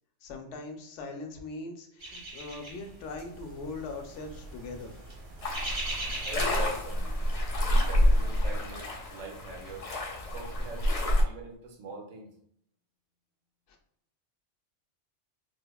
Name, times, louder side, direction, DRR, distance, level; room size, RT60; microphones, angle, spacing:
voice 1, 0.2-4.9 13.7-13.8, left 3 dB, 75° left, 3 dB, 0.9 m, -41 dB
sound 1, 2.0-8.4, right 1 dB, 90° right, 1.5 m, -41 dB
sound 2, 5.4-11.2, left 1 dB, 50° left, 0.4 m, -28 dB
voice 2, 6.2-7.2 7.7-9.9 10.3-11.0 11.2-12.3, right 3 dB, 45° right, 2 dB, 0.5 m, -43 dB
4.7 x 2.1 x 2.2 m, 0.69 s
omnidirectional pair, 1.3 m